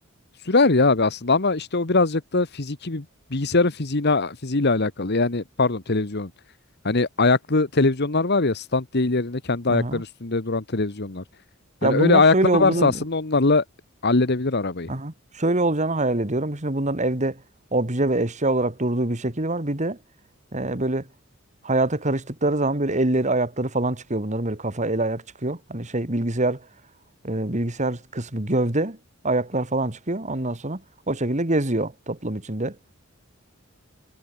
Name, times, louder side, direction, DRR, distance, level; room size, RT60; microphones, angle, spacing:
voice 1, 0.4-3.0 3.3-6.3 6.8-11.2 11.8-13.6 14.0-14.9, left 3 dB, 55° left, 1.4 m, -21 dB
voice 2, 9.7-10.0 11.8-12.9 14.9-17.4 17.7-20.0 20.5-21.0 21.6-26.6 27.2-29.0 29.2-30.8 31.1-32.7, right 2 dB, 35° right, 2.3 m, -24 dB
head